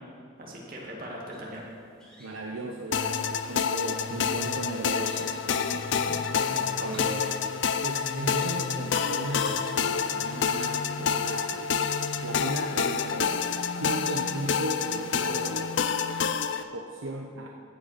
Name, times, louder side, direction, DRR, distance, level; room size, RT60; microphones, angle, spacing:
voice 1, 0.4-1.6 5.9-6.2 6.5-7.0, equal, 45° right, -3 dB, 2.1 m, -40 dB
sound 1, 1.3-14.6, equal, 5° left, 1.7 m, -54 dB
voice 2, 2.2-5.9 6.8-7.4 7.8-11.7 12.2-15.9 16.7-17.5, right 2 dB, 70° right, 1 dB, 0.7 m, -36 dB
sound 2, 2.9-16.6, left 6 dB, 60° left, 0.4 m, -28 dB
15.0 x 5.5 x 5.8 m, 2.4 s
head